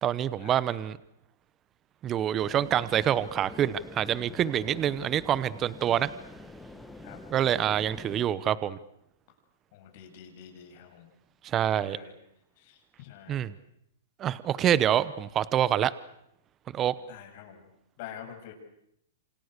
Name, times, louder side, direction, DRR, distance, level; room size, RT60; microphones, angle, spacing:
voice 1, 0.0-1.0 2.0-6.1 7.3-8.8 11.4-12.0 13.3-13.5 14.2-15.9 16.7-16.9, right 10 dB, 25° right, 17 dB, 1.0 m, -26 dB
sound 1, 2.4-8.3, left 2 dB, 5° left, 2.1 m, -46 dB
voice 2, 9.7-11.1 11.5-12.1 12.6-13.5 17.1-17.6 18.0-18.5, left 9 dB, 50° left, 4 dB, 7.9 m, -46 dB
27.5 x 27.5 x 6.8 m, 0.77 s
hypercardioid pair, 135°, 0 cm